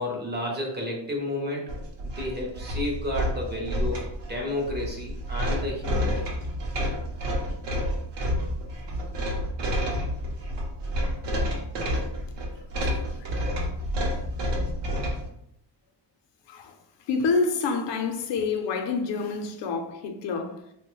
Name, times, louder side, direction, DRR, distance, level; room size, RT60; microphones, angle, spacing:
voice 1, 0.0-1.8 2.0-6.3, left 1 dB, 25° right, 0.5 m, -31 dB
sound 1, 1.7-15.3, equal, 75° right, 0.7 m, -29 dB
voice 2, 12.8-13.7 16.5-20.6, left 4 dB, 80° left, 0.5 m, -29 dB
3.0 x 2.1 x 3.0 m
wide cardioid pair, 180°, 42 cm